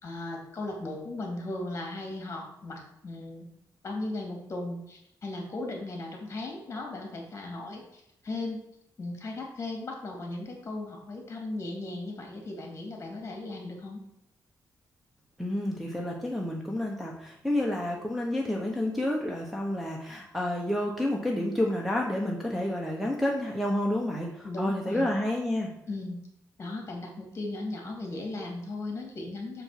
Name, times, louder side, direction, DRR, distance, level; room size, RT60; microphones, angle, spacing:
voice 1, 0.0-3.4 3.8-8.6 9.0-14.0 24.4-25.1 25.9-26.2 26.6-29.6, left 2 dB, 35° left, 1 dB, 2.8 m, -37 dB
voice 2, 15.4-25.7, left 1 dB, ahead, -2 dB, 1.1 m, -29 dB
7.0 x 5.2 x 5.9 m, 0.77 s
cardioid pair, 125°, 7 cm